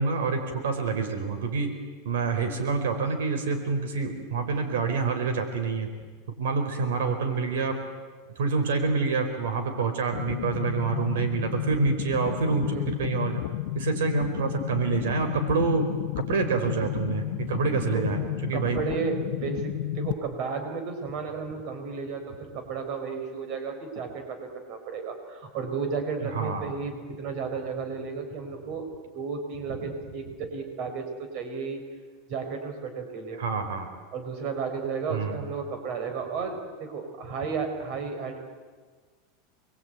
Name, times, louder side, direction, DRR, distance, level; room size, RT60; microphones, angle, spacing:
voice 1, 0.0-1.8 2.0-5.9 6.4-7.8 8.4-13.4 13.7-15.9 16.1-18.8 26.2-26.7 33.4-33.9 35.1-35.4, right 4 dB, 90° right, 6 dB, 4.8 m, -27 dB
sound 1, 10.1-20.1, left 15 dB, 65° left, 1.1 m, -32 dB
voice 2, 18.5-28.9 29.1-31.8 32.3-33.4 34.1-38.4, right 5 dB, 45° right, 5 dB, 5.0 m, -33 dB
27.0 x 22.5 x 9.3 m, 1.5 s
supercardioid pair, 160°, 0 cm